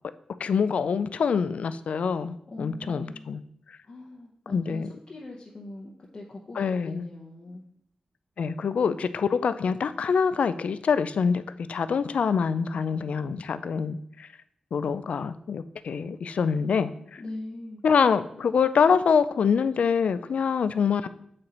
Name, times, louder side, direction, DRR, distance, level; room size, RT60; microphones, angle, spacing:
voice 1, 0.4-3.4 3.7-3.8 4.5-4.9 6.6-7.1 8.4-11.4 11.7-14.3 14.7-16.9 17.8-21.1, left 6 dB, 75° left, 13 dB, 0.3 m, -25 dB
voice 2, 2.5-3.3 3.8-7.6 17.2-17.8, left 2 dB, 40° left, -3 dB, 0.8 m, -41 dB
7.7 x 4.3 x 3.9 m, 0.70 s
wide cardioid pair, 140°, 2 cm